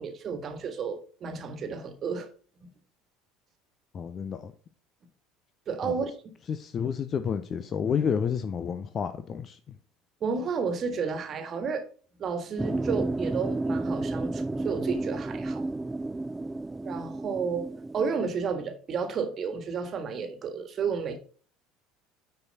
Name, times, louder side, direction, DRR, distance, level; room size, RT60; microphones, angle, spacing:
voice 1, 0.0-2.3 2.6-2.7 5.7-6.1 10.2-11.9 12.2-15.6 16.8-17.7 17.9-21.2, right 5 dB, 40° right, 1.6 m, -32 dB
voice 2, 3.9-4.5 5.8-5.9 6.5-9.6, left 7 dB, 35° left, 0.6 m, -30 dB
sound 1, 12.6-18.1, right 2 dB, 15° right, 0.3 m, -31 dB
9.5 x 4.7 x 4.1 m
figure-of-eight pair, 65°, 0 cm